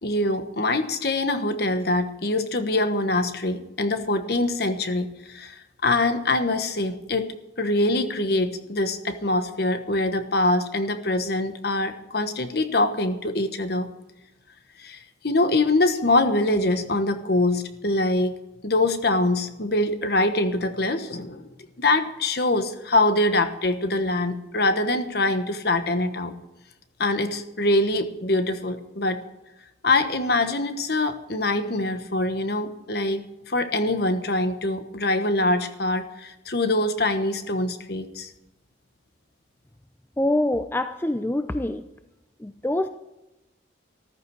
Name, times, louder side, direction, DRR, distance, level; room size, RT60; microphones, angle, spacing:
voice 1, 0.0-7.3 7.6-13.9 14.8-18.4 18.6-21.5 21.8-26.3 27.0-29.2 29.8-38.3, left 2 dB, 55° left, 9 dB, 1.2 m, -24 dB
voice 2, 40.2-41.8 42.4-42.9, left 1 dB, 10° left, 9 dB, 0.4 m, -25 dB
14.0 x 14.0 x 4.7 m, 0.96 s
head